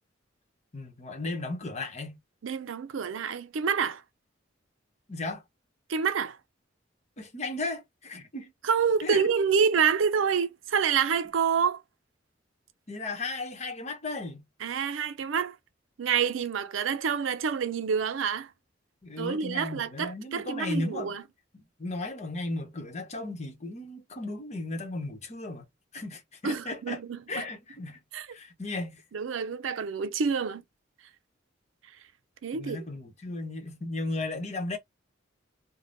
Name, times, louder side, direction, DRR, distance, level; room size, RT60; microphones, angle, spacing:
voice 1, 0.7-2.2 5.1-5.4 7.2-8.5 9.0-9.2 12.9-14.4 19.0-21.2 21.5-25.7 25.9-27.0 27.3-28.0 28.3-29.0 32.5-34.8, left 2 dB, 35° left, 0.9 m, -35 dB
voice 2, 2.4-4.0 5.9-6.4 8.6-11.8 14.6-15.5 16.0-18.5 19.2-21.2 26.4-27.4 28.1-28.3 29.1-30.6 32.4-32.8, right 6 dB, 80° right, 0.5 m, -27 dB
3.4 x 2.1 x 2.5 m
head